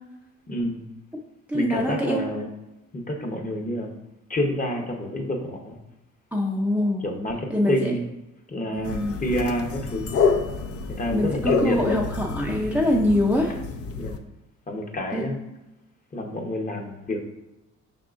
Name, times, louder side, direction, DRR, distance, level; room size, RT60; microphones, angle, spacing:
voice 1, 0.5-0.8 1.5-2.5 2.9-3.9 4.3-5.8 7.0-8.1 8.5-10.2 11.0-12.0 14.0-14.2 14.7-15.4 16.1-17.2, left 1 dB, 25° left, 2 dB, 0.8 m, -28 dB
voice 2, 1.5-2.2 6.3-7.0 7.5-7.9 8.7-9.2 11.1-13.6 15.1-15.2, left 1 dB, 5° right, -2 dB, 0.5 m, -24 dB
sound 1, 8.8-14.2, left 5 dB, 50° left, 0.5 m, -28 dB
5.3 x 3.6 x 2.5 m, 0.97 s
cardioid pair, 90°, 30 cm